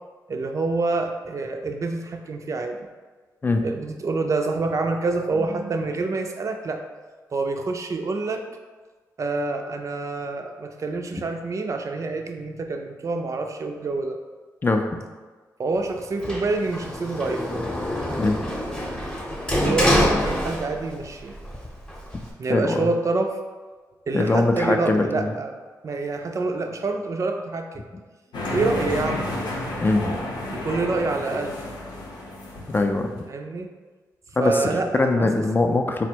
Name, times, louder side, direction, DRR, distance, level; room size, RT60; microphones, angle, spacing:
voice 1, 0.3-2.8 3.6-6.8 7.3-8.4 9.2-14.2 15.6-17.4 19.5-21.4 22.4-23.4 24.1-25.5 25.8-27.8 28.5-29.2 30.5-31.6 33.3-33.7 34.4-35.4, right 3 dB, 45° right, 5 dB, 0.4 m, -27 dB
Sliding door, 16.2-21.0 21.4-22.3, equal, 10° left, 0.8 m, -25 dB
voice 2, 22.5-22.9 24.1-25.3 29.8-30.2 32.7-33.1 34.4-36.1, left 2 dB, 30° left, 4 dB, 0.4 m, -22 dB
sound 1, 28.3-33.2, left 1 dB, 85° left, 0.7 m, -31 dB
4.1 x 2.1 x 4.4 m, 1.4 s
cardioid pair, 70°, 7 cm